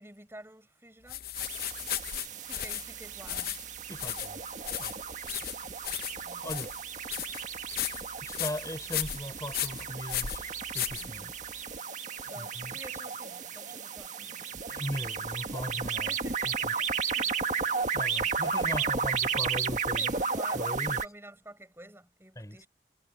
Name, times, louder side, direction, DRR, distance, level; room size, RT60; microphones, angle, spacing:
voice 1, 0.0-3.6 6.2-6.6 11.0-11.4 12.2-14.5 16.0-17.9 18.4-18.9 19.9-20.7 21.0-22.7, right 1 dB, 15° right, 7.4 m, -51 dB
sound 1, 1.1-11.6, left 12 dB, 55° left, 0.8 m, -36 dB
sound 2, 1.4-21.1, right 5 dB, 45° right, 1.9 m, -34 dB
voice 2, 3.9-4.4 4.8-5.0 6.4-6.7 7.7-7.8 8.2-11.3 12.4-12.8 14.5-16.2 16.4-16.7 17.9-20.1 20.5-21.0 22.3-22.6, equal, 20° left, 6.4 m, -39 dB
head